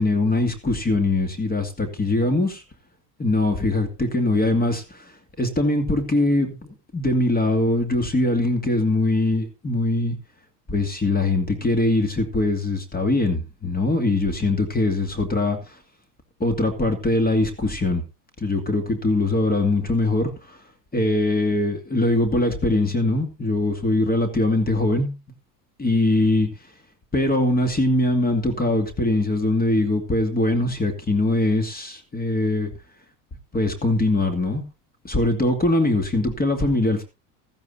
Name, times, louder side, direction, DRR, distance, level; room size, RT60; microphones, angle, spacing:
voice 1, 0.0-2.6 3.2-5.0 5.4-10.2 10.7-15.6 16.4-18.0 18.4-20.6 20.9-25.2 25.8-26.5 27.1-32.7 33.5-34.6 35.0-37.0, left 2 dB, 20° left, 2.5 m, -22 dB
15.5 x 13.5 x 2.7 m
hypercardioid pair, 90°, 47 cm